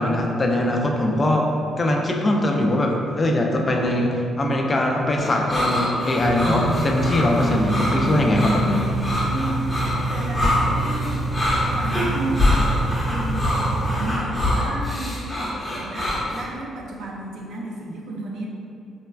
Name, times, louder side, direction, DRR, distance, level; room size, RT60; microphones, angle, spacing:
voice 1, 0.0-1.5 1.8-8.8, left 1 dB, 30° left, 1 dB, 0.3 m, -21 dB
sound 1, 5.2-16.5, left 1 dB, 10° left, 0.9 m, -25 dB
sound 2, 6.2-14.2, right 2 dB, 20° right, 0.5 m, -27 dB
voice 2, 9.2-9.7 10.1-11.2 11.7-12.7 13.0-18.5, right 2 dB, 75° right, -2 dB, 0.4 m, -32 dB
3.2 x 2.0 x 2.2 m, 2.5 s
cardioid pair, 90°, 0 cm